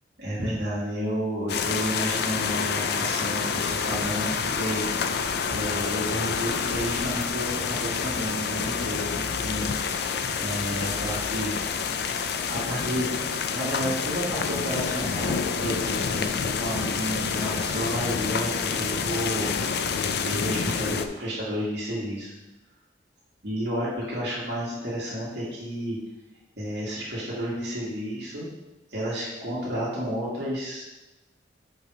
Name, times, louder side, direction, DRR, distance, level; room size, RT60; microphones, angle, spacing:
voice 1, 0.2-5.2 5.5-11.5 12.5-13.1 13.5-22.3 23.4-26.0 26.6-28.5 28.9-30.8, equal, 70° right, -8 dB, 2.1 m, -31 dB
sound 1, 1.5-21.1, left 6 dB, 65° left, 0.4 m, -28 dB
5.9 x 4.8 x 5.1 m, 1.0 s
head